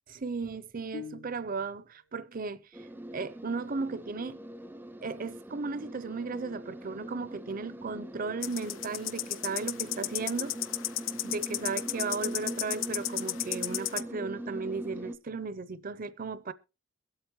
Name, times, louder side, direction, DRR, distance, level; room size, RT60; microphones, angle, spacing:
voice 1, 0.1-4.4 5.0-10.6 11.2-16.5, right 4 dB, 45° right, 0.7 m, -35 dB
sound 1, 0.9-2.0, left 5 dB, 65° left, 3.3 m, -44 dB
sound 2, 2.7-15.2, right 1 dB, 10° right, 0.6 m, -42 dB
sound 3, 8.4-14.0, left 14 dB, 85° left, 0.5 m, -34 dB
22.5 x 8.1 x 3.1 m
head